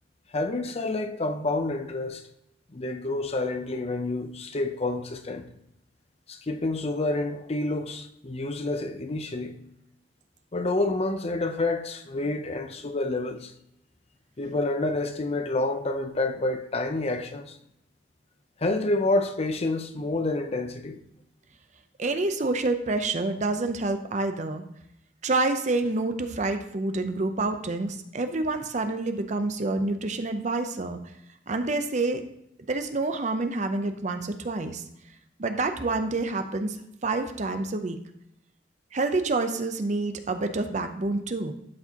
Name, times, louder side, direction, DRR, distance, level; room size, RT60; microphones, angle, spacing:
voice 1, 0.3-2.2 2.7-5.5 6.3-9.6 10.5-13.5 14.4-17.6 18.6-21.0, left 2 dB, 35° left, 0.6 m, -28 dB
voice 2, 22.0-24.6 25.2-31.0 31.5-32.2 32.7-34.8 35.4-36.8 37.0-38.0 38.9-41.5, right 2 dB, 40° right, 0.7 m, -28 dB
11.5 x 4.7 x 2.9 m
head